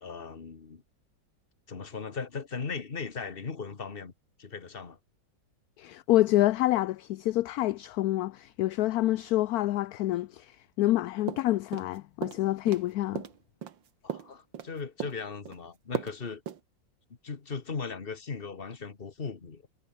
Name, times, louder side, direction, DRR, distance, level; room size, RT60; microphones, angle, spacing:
voice 1, 0.0-0.8 1.7-4.1 4.4-5.0 14.0-16.4 17.2-19.7, left 5 dB, 30° left, 1.7 m, -38 dB
voice 2, 5.8-13.2, left 15 dB, 70° left, 0.9 m, -27 dB
sound 1, 11.3-12.0 12.2-12.8 13.2-14.7 15.0-15.6 15.9-16.2 16.5-16.6, right 8 dB, 85° right, 2.2 m, -36 dB
omnidirectional pair, 2.0 m